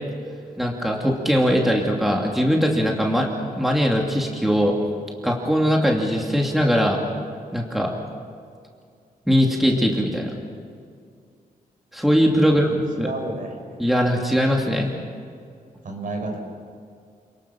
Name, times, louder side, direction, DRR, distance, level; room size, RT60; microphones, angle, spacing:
voice 1, 0.6-4.8 5.2-7.0 7.5-7.9 9.3-10.3 11.9-12.7 13.0-13.1 13.8-14.9, equal, ahead, -1 dB, 2.7 m, -20 dB
voice 2, 13.0-13.5 15.8-16.4, right 2 dB, 60° right, 2 dB, 5.7 m, -31 dB
28.5 x 20.0 x 6.0 m, 2.3 s
wide cardioid pair, 115°, 16 cm